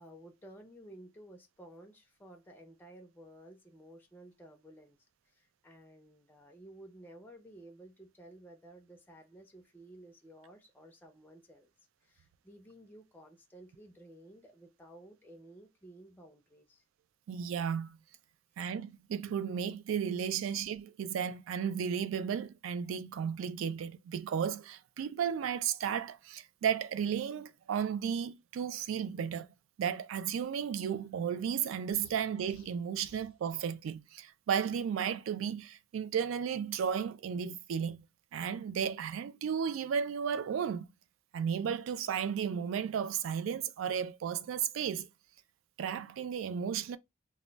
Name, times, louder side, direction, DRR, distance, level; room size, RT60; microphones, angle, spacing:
voice 1, 0.0-5.0 5.2-11.7 12.0-16.8, right 1 dB, 10° left, 0.4 m, -54 dB
voice 2, 17.3-18.0 18.6-29.5 29.8-38.0 38.3-40.9 41.3-45.1 45.8-47.0, right 7 dB, 80° right, 0.3 m, -34 dB
sound 1, 31.9-33.4, left 4 dB, 80° left, 0.5 m, -58 dB
2.2 x 2.1 x 3.8 m
head